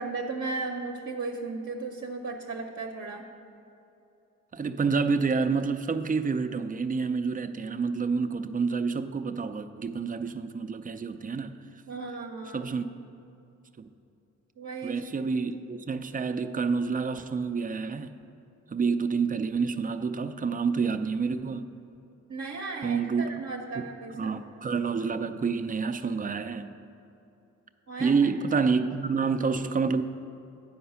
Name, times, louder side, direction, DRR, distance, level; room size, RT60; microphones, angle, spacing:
voice 1, 0.0-3.3 11.9-12.7 14.6-15.3 22.3-24.4 27.9-28.2, right 3 dB, 50° right, 0 dB, 0.8 m, -35 dB
voice 2, 4.5-11.6 12.5-12.8 13.8-13.9 14.8-18.2 18.7-21.7 22.8-23.3 23.7-23.8 24.1-26.7 28.0-30.0, right 5 dB, 25° right, 9 dB, 0.5 m, -28 dB
9.4 x 4.7 x 5.7 m, 2.8 s
supercardioid pair, 50°, 31 cm